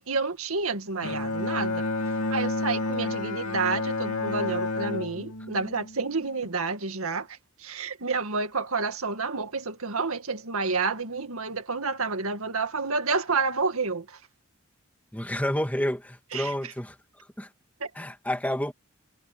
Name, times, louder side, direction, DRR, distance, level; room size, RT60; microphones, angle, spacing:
voice 1, 0.0-1.9 2.3-14.2 16.3-16.5 17.8-17.9, right 4 dB, 80° right, 2.0 m, -29 dB
Bowed string instrument, 1.0-6.5, left 2 dB, 85° left, 3.3 m, -30 dB
voice 2, 15.1-17.0 17.4-17.5 17.9-18.7, equal, 5° left, 2.6 m, -29 dB
head